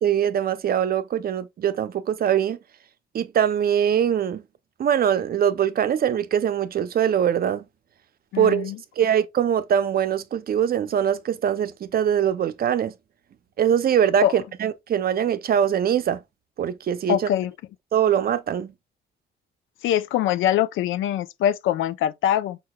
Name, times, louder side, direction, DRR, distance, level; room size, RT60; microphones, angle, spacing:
voice 1, 0.0-2.6 3.1-4.4 4.8-7.6 8.4-12.9 13.6-16.2 16.6-17.2 17.9-18.7, right 9 dB, 50° right, 0.5 m, -22 dB
voice 2, 8.3-8.8 14.2-14.3 17.1-17.5 19.8-22.6, left 11 dB, 80° left, 0.5 m, -23 dB
4.7 x 4.4 x 2.2 m
cardioid pair, 90°, 20 cm